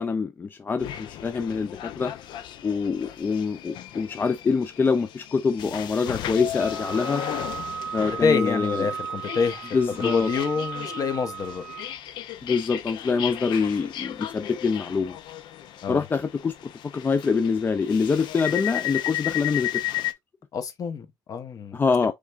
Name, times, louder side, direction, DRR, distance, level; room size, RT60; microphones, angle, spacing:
voice 1, 0.0-2.1 2.6-7.2 7.9-8.9 9.7-10.3 12.4-15.2 15.9-19.8 21.7-22.1, left 5 dB, 25° left, 0.4 m, -25 dB
sound 1, 0.8-20.1, left 13 dB, 80° left, 0.5 m, -35 dB
Wind instrument woodwind instrument, 6.6-11.9, right 7 dB, 15° right, 0.6 m, -36 dB
voice 2, 8.2-11.6 15.8-16.0 20.5-21.8, left 5 dB, 50° left, 0.9 m, -27 dB
5.0 x 3.4 x 2.4 m
cardioid pair, 130°, 8 cm